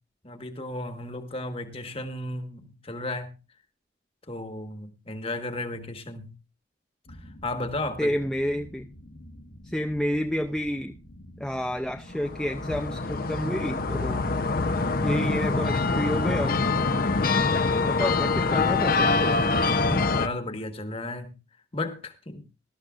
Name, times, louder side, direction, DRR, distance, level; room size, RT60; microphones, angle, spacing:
voice 1, 0.2-3.4 4.3-6.3 7.4-8.1 15.0-15.2 19.9-21.3 21.7-22.4, left 2 dB, 30° left, 1.4 m, -34 dB
sound 1, 7.0-19.8, left 1 dB, 75° left, 1.8 m, -47 dB
voice 2, 8.0-8.8 9.6-10.9 11.4-14.3 15.0-16.6 17.8-19.4, equal, 5° left, 0.5 m, -29 dB
sound 2, 12.2-20.3, left 3 dB, 50° left, 0.8 m, -25 dB
19.0 x 13.0 x 2.5 m
head